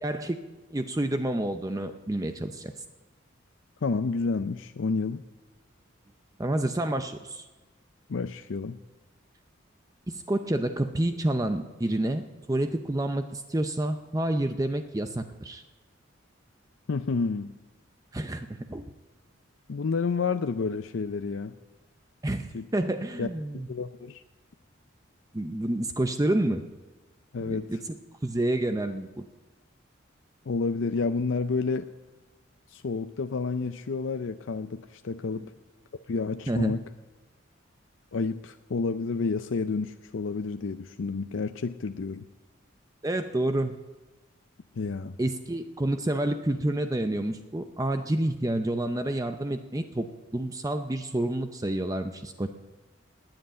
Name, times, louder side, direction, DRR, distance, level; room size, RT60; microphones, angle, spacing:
voice 1, 0.0-0.4 0.7-2.7 6.4-7.4 10.1-12.2 12.5-15.6 18.1-18.8 22.2-23.7 25.3-26.6 27.4-28.0 28.2-29.2 35.4-35.5 36.5-36.8 43.0-43.7 45.2-50.1 50.3-52.5, right 1 dB, 15° right, 7 dB, 0.6 m, -29 dB
voice 2, 3.8-5.2 8.1-8.8 16.9-17.5 19.7-21.5 22.5-22.7 23.2-23.3 23.5-24.2 27.3-27.7 30.5-31.9 32.7-35.5 36.1-36.8 38.1-42.3 44.8-45.2, left 4 dB, 70° left, 9 dB, 0.5 m, -30 dB
19.5 x 8.0 x 8.7 m, 1.2 s
head